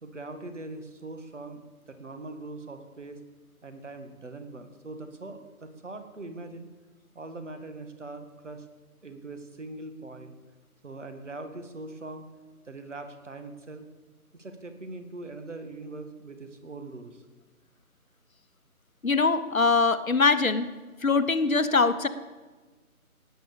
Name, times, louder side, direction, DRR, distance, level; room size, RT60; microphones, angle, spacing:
voice 1, 0.0-1.6 1.9-3.2 3.6-6.7 7.1-8.7 9.0-10.3 10.8-12.3 12.6-13.9 14.3-17.2, right 2 dB, 55° right, 7 dB, 2.1 m, -41 dB
voice 2, 19.0-20.7 21.0-22.1, left 4 dB, 65° left, 11 dB, 1.2 m, -22 dB
17.0 x 9.5 x 7.0 m, 1.3 s
figure-of-eight pair, 165°, 45 cm